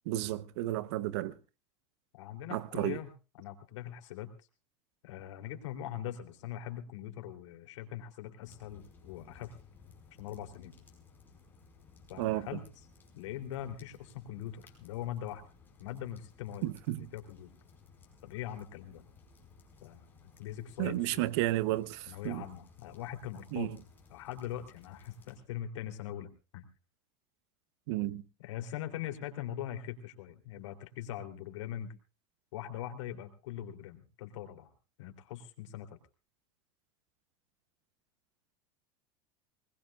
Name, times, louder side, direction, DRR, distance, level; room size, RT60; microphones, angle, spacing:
voice 1, 0.1-1.4 2.5-3.0 12.2-12.6 16.6-17.1 20.8-22.4 23.5-23.8 27.9-28.2, right 16 dB, 70° right, 0.9 m, -32 dB
voice 2, 2.1-3.1 3.4-4.3 5.0-9.5 10.2-10.7 12.1-12.6 13.1-15.4 15.8-16.6 16.9-17.5 18.2-19.0 19.8-21.3 22.1-23.7 24.1-26.6 28.4-31.9 32.5-34.7 35.0-35.9, left 11 dB, 85° left, 3.1 m, -42 dB
sound 1, 8.4-25.4, left 4 dB, 15° left, 4.9 m, -59 dB
22.5 x 20.0 x 2.4 m
supercardioid pair, 150°, 15 cm